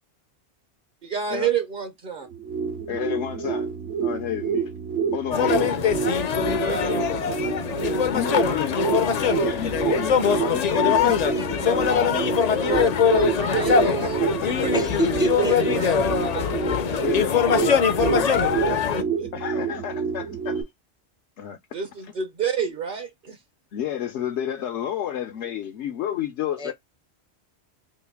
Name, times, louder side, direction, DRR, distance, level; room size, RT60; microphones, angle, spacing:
voice 1, 1.0-2.3 6.5-7.0 12.6-14.2 14.6-14.8 15.4-15.9 16.3-16.4 18.4-19.3 21.7-23.4, right 8 dB, 55° right, 0.8 m, -29 dB
sound 1, 2.2-20.6, right 6 dB, 75° right, 1.1 m, -28 dB
voice 2, 2.9-3.7 4.0-4.7 5.1-5.8 8.1-12.8 13.8-14.9 17.0-18.4 19.3-20.6 21.4-21.6 23.7-26.7, left 9 dB, 85° left, 0.9 m, -31 dB
sound 2, 5.3-19.0, left 7 dB, 55° left, 0.4 m, -23 dB
voice 3, 14.7-15.5 26.6-26.7, equal, 5° right, 0.3 m, -26 dB
3.1 x 2.5 x 3.4 m
omnidirectional pair, 1.1 m